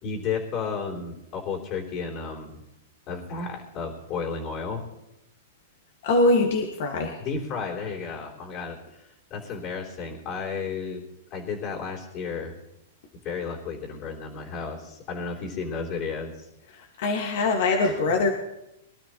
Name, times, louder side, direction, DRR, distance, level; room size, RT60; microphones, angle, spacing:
voice 1, 0.0-2.6 3.1-4.8 7.2-11.0 11.3-12.5 13.2-16.5 17.8-18.0, left 5 dB, 40° left, -3 dB, 3.3 m, -33 dB
voice 2, 6.0-7.2 16.7-18.3, left 2 dB, 60° left, 2 dB, 1.9 m, -23 dB
24.0 x 12.5 x 3.1 m, 0.87 s
hypercardioid pair, 110°, 0 cm